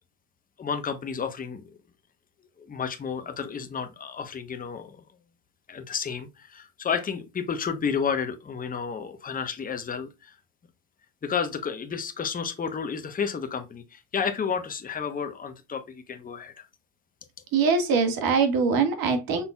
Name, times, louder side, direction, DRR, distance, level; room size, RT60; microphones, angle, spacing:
voice 1, 0.6-1.8 2.6-5.0 5.7-10.4 11.2-16.7, left 6 dB, 20° left, 0.9 m, -31 dB
voice 2, 17.5-19.5, right 5 dB, 60° right, 1.7 m, -23 dB
5.6 x 3.8 x 2.2 m
supercardioid pair, 85°, 40 cm